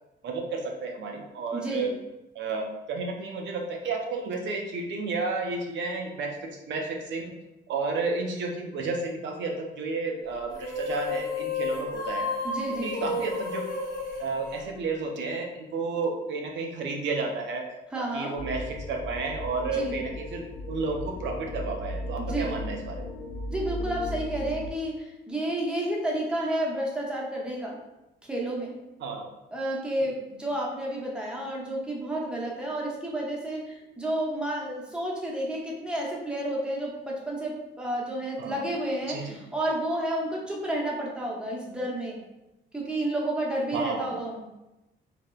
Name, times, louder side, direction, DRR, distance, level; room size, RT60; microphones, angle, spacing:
voice 1, 0.2-1.9 2.3-7.3 7.7-12.3 12.8-13.7 14.2-17.6 18.0-23.0 29.0-29.3 38.4-38.7 39.1-39.3 43.7-44.1, right 3 dB, 65° right, 1 dB, 0.4 m, -32 dB
voice 2, 1.5-1.9 12.4-13.0 17.9-18.3 19.7-20.0 22.2-22.6 23.5-27.8 28.2-28.7 29.5-42.2 42.7-44.4, right 1 dB, 5° right, -3 dB, 0.6 m, -31 dB
sound 1, 10.5-15.2, left 3 dB, 50° left, 1.0 m, -32 dB
sound 2, 18.4-24.7, left 1 dB, 75° left, 0.6 m, -36 dB
3.2 x 2.0 x 2.2 m, 0.97 s
cardioid pair, 90°, 20 cm